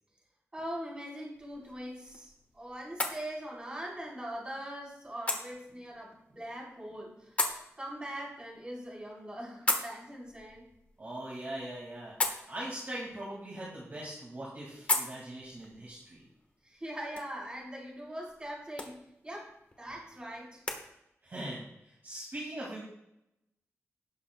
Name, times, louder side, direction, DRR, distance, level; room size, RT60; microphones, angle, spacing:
voice 1, 0.5-7.4 7.8-10.7 16.6-19.0 19.2-20.6, right 1 dB, 20° right, -3 dB, 3.8 m, -42 dB
sound 1, 1.3-20.8, left 2 dB, 25° left, 1.2 m, -40 dB
voice 2, 11.0-12.2 12.5-16.2 19.9-20.0 21.2-22.8, right 1 dB, 40° right, -5 dB, 2.1 m, -41 dB
17.5 x 7.1 x 2.2 m, 0.83 s
wide cardioid pair, 150°, 5 cm